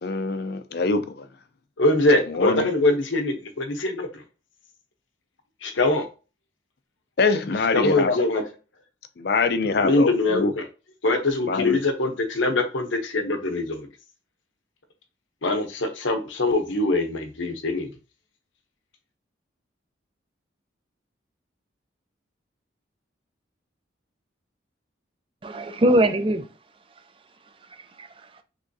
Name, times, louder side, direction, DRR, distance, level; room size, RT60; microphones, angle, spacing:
voice 1, 0.0-1.3 2.4-2.6 7.2-8.2 9.2-10.5 11.5-11.8, left 4 dB, 55° left, 0.4 m, -24 dB
voice 2, 1.8-4.2 5.6-6.0 7.7-8.4 9.8-10.6 11.0-13.9 15.4-17.9, left 2 dB, 80° left, 0.8 m, -23 dB
voice 3, 25.4-26.5 27.7-28.4, right 1 dB, 25° right, 0.4 m, -23 dB
3.5 x 3.1 x 2.7 m
head